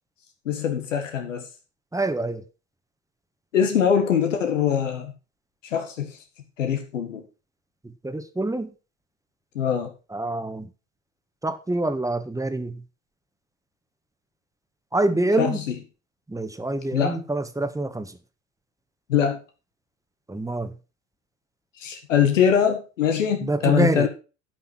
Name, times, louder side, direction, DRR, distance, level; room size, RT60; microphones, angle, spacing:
voice 1, 0.5-1.5 3.5-5.1 5.6-6.2 6.6-7.2 9.6-9.9 15.4-15.7 16.9-17.2 19.1-19.4 21.8-24.1, left 8 dB, 85° left, 1.8 m, -23 dB
voice 2, 1.9-2.4 7.8-8.7 10.1-10.7 11.4-12.8 14.9-15.6 16.3-18.2 20.3-20.7 23.4-24.1, right 2 dB, 10° right, 1.4 m, -26 dB
12.0 x 5.6 x 6.1 m
hypercardioid pair, 70°, 37 cm